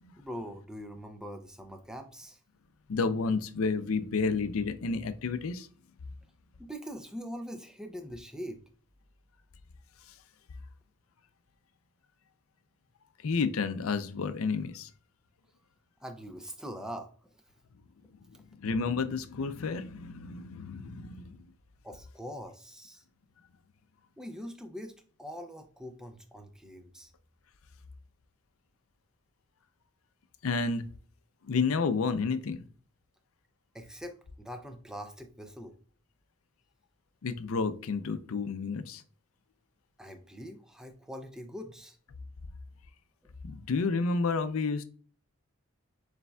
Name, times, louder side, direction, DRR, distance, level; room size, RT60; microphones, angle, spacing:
voice 1, 0.2-2.4 6.6-8.6 16.0-17.3 21.8-23.0 24.2-24.9 25.2-27.1 33.7-35.7 40.0-42.0, equal, 5° right, 0.4 m, -43 dB
voice 2, 2.9-5.7 13.2-14.9 18.6-21.4 30.4-30.9 31.5-32.7 37.2-39.0 43.4-44.8, left 4 dB, 75° left, 0.5 m, -30 dB
6.7 x 3.3 x 2.3 m
head